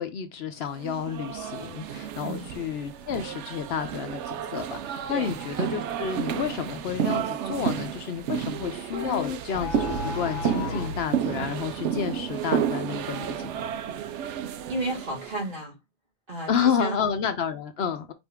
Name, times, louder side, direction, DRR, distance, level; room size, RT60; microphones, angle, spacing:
voice 1, 0.0-13.6 16.5-18.1, left 7 dB, 70° left, 0.8 m, -30 dB
sound 1, 0.8-15.5, right 9 dB, 80° right, 0.9 m, -31 dB
sound 2, 8.9-11.1, left 4 dB, 90° left, 1.1 m, -33 dB
voice 2, 14.7-15.8 16.3-17.0, right 1 dB, 50° right, 2.3 m, -32 dB
5.1 x 2.6 x 3.4 m
omnidirectional pair, 1.2 m